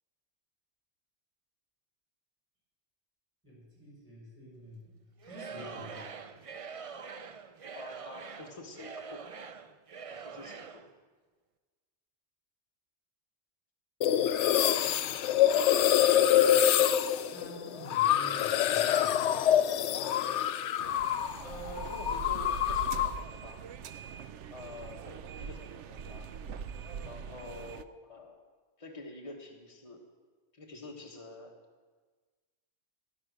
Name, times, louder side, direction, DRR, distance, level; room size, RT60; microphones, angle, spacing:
voice 1, 3.4-4.9 5.2-6.1 17.3-19.3, equal, 10° left, -5 dB, 6.4 m, -48 dB
Singing / Crowd, 5.2-10.9, right 6 dB, 40° right, 0.5 m, -44 dB
voice 2, 7.7-9.3 10.2-10.8 21.4-23.6 24.5-26.3 27.0-28.4 28.8-30.0 30.5-31.5, left 2 dB, 30° left, 0 dB, 1.6 m, -47 dB
sound 1, 14.0-21.4 21.7-23.2, left 10 dB, 80° left, 0.9 m, -26 dB
sound 2, 20.8-27.8, right 6 dB, 85° right, 0.9 m, -42 dB
16.0 x 12.0 x 6.4 m, 1.4 s
omnidirectional pair, 1.2 m